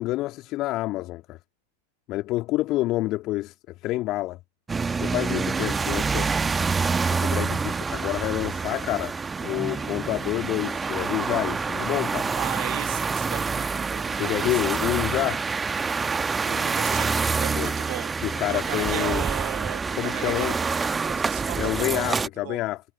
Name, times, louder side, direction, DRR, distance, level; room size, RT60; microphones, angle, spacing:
voice 1, 0.0-1.4 2.1-4.4 5.0-6.3 7.1-9.1 9.4-12.3 14.1-15.4 17.5-17.7 18.2-19.2 20.0-20.6 21.6-22.8, left 17 dB, 35° left, 2.6 m, -28 dB
sound 1, 4.7-22.3, right 4 dB, 15° right, 1.3 m, -27 dB
voice 2, 12.3-14.9 16.4-17.1 17.4-18.1 18.5-22.6, right 38 dB, 45° right, 1.6 m, -36 dB
figure-of-eight pair, 90°, 0 cm